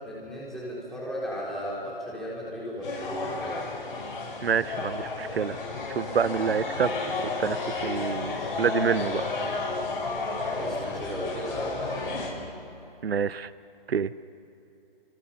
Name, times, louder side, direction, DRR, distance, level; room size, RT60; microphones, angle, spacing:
voice 1, 0.0-3.7 10.4-12.3, equal, ahead, -7 dB, 3.9 m, -35 dB
sound 1, 2.8-12.3, left 3 dB, 60° left, 7.7 m, -32 dB
voice 2, 4.4-5.6 6.0-6.9 7.4-7.6 7.8-8.3 8.6-9.2 13.0-13.5 13.9-14.1, right 7 dB, 85° right, 17 dB, 0.8 m, -27 dB
29.5 x 26.0 x 5.7 m, 3.0 s
hypercardioid pair, 155°, 30 cm